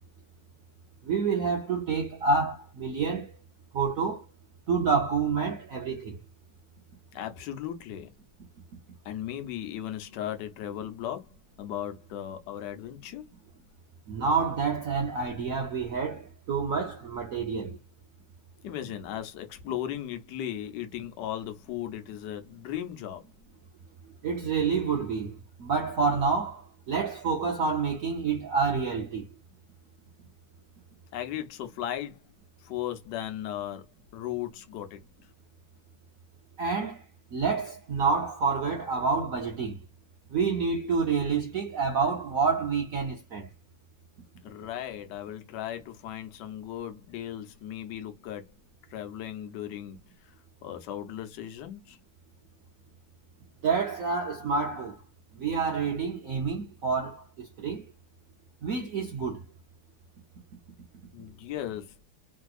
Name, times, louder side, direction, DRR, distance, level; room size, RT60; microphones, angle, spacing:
voice 1, 1.0-3.3 3.7-4.3 4.7-6.2 14.1-17.8 24.2-29.3 36.6-37.0 37.3-39.8 40.3-43.5 53.6-55.0 55.3-57.8 58.6-59.4, right 5 dB, 80° right, 0.7 m, -28 dB
voice 2, 7.1-8.1 9.0-11.3 11.6-13.2 18.6-23.2 31.1-32.2 32.6-33.9 34.1-35.0 44.4-48.5 48.9-50.3 50.6-52.0 61.1-62.0, left 11 dB, 65° left, 1.2 m, -36 dB
3.4 x 2.8 x 2.3 m
omnidirectional pair, 2.4 m